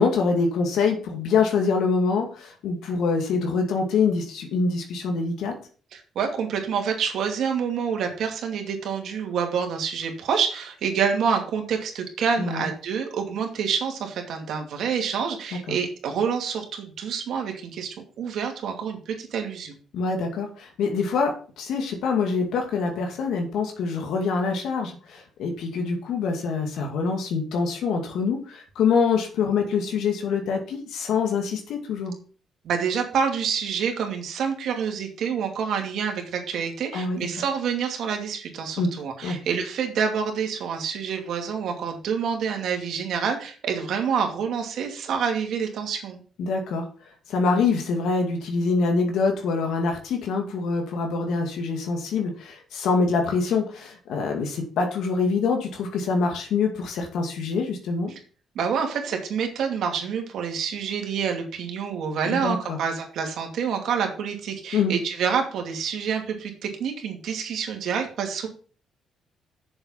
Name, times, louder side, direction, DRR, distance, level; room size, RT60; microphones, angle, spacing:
voice 1, 0.0-5.5 12.4-12.7 15.7-15.8 19.9-32.1 36.9-37.2 38.8-38.9 39.2-39.4 46.4-46.8 47.3-58.1 62.3-62.8 64.7-64.9, left 4 dB, 80° left, 3 dB, 2.3 m, -25 dB
voice 2, 5.9-19.8 32.6-46.2 58.5-68.5, right 6 dB, 75° right, 3 dB, 2.5 m, -27 dB
7.2 x 7.0 x 5.7 m, 0.40 s
cardioid pair, 90°, 0 cm